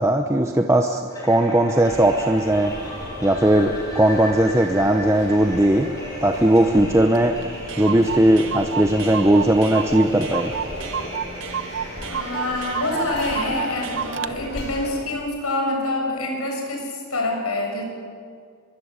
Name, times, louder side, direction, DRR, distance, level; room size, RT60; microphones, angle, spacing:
voice 1, 0.0-2.7 3.2-5.9 6.2-7.4 7.8-10.5, right 1 dB, 15° right, 4 dB, 0.9 m, -18 dB
sound 1, 1.1-13.9, equal, 15° left, 6.0 m, -36 dB
sound 2, 1.8-15.1, left 1 dB, 55° left, 4.9 m, -37 dB
Clock, 7.1-7.2 7.4-7.5 7.7-14.3, right 8 dB, 55° right, 0.8 m, -31 dB
voice 2, 12.0-17.8, left 2 dB, 80° left, 2 dB, 6.8 m, -26 dB
24.5 x 23.0 x 8.3 m, 2.1 s
head